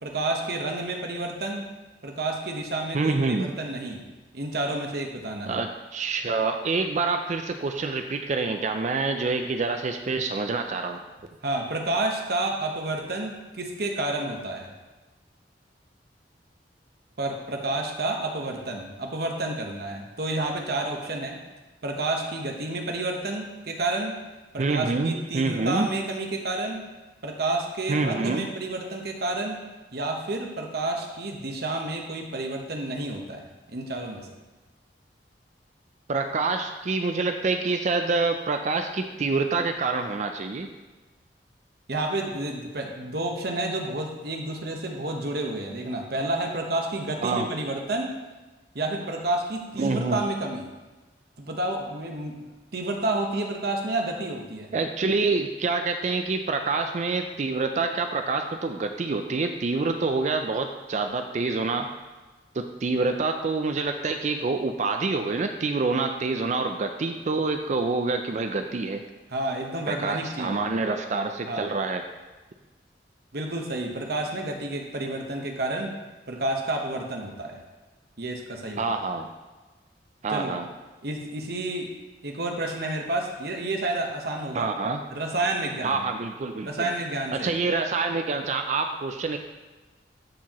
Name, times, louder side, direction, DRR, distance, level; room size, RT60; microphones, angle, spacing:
voice 1, 0.0-1.7 2.0-4.0 4.3-5.6 11.4-14.7 17.2-21.4 21.8-24.2 24.5-26.9 27.2-29.6 29.9-34.3 41.9-48.2 48.7-50.7 51.4-52.4 52.7-54.7 69.3-70.7 71.5-71.7 73.3-75.9 76.3-77.6 78.2-78.8 80.3-80.6 81.0-81.9 82.2-84.7 85.1-86.0 86.6-87.5, right 2 dB, 60° right, 2 dB, 1.1 m, -30 dB
voice 2, 2.9-3.5 5.5-11.0 24.6-25.9 27.9-28.5 36.1-40.7 47.2-47.5 49.8-50.2 54.7-61.9 62.5-69.0 69.9-72.0 78.8-79.3 80.2-80.7 84.5-85.0 85.8-86.9 87.3-89.4, right 3 dB, 40° right, 6 dB, 0.4 m, -27 dB
13.0 x 4.7 x 3.0 m, 1.2 s
head